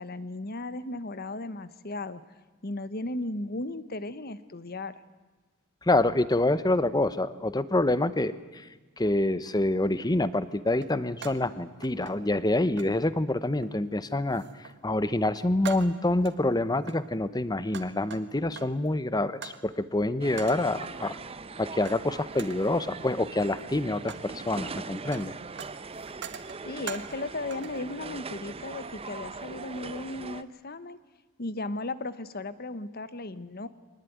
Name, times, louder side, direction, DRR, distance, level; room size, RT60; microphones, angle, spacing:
voice 1, 0.0-2.2 2.6-5.0 26.7-31.0 31.4-33.7, left 2 dB, 45° left, 14 dB, 1.1 m, -36 dB
voice 2, 5.8-8.7 9.0-21.2 21.6-25.3, left 2 dB, 20° left, 14 dB, 0.8 m, -27 dB
sound 1, 9.5-9.6 10.8-11.5 11.8-12.5 12.8-13.0 13.6-13.9 14.3-14.8 15.1-16.4 16.8-18.9 19.4-19.7 20.4-20.7 21.8-22.1 22.3-22.7 23.4-24.3 24.6-27.2 27.5-27.8, right 7 dB, 55° right, 1.5 m, -44 dB
sound 2, 20.2-30.4, right 4 dB, 25° right, 0.7 m, -41 dB
23.5 x 19.5 x 9.4 m, 1.3 s
head